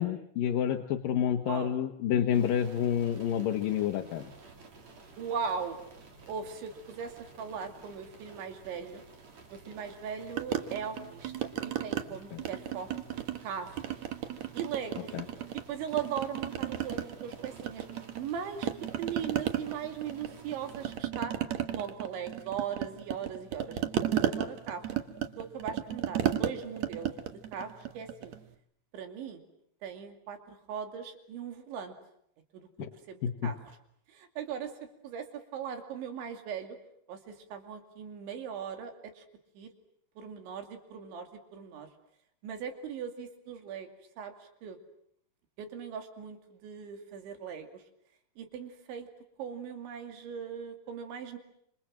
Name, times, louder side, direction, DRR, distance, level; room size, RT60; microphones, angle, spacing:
voice 1, 0.0-4.2 12.3-12.4 15.1-15.2 32.8-32.9 33.2-33.5, left 9 dB, 65° left, 5 dB, 2.5 m, -29 dB
sound 1, 2.3-21.0, right 3 dB, 40° right, 4.3 m, -53 dB
voice 2, 5.2-5.8 6.3-9.0 9.5-12.9 13.4-14.0 14.5-15.2 15.5-17.9 18.2-18.7 19.0-21.4 21.7-24.9 25.4-27.2 27.5-28.3 28.9-29.4 29.8-31.9 32.5-33.6 34.1-34.7 35.0-36.8 37.1-39.2 39.6-39.7 40.2-41.9 42.4-43.9 44.2-44.8 45.6-47.8 48.4-49.1 49.4-51.4, right 7 dB, 85° right, 6 dB, 4.9 m, -39 dB
sound 2, 10.4-12.0 12.4-13.5 13.8-15.6 15.9-18.3 18.6-28.4, right 10 dB, 65° right, 1.8 m, -34 dB
28.5 x 26.5 x 7.6 m, 0.71 s
omnidirectional pair, 5.1 m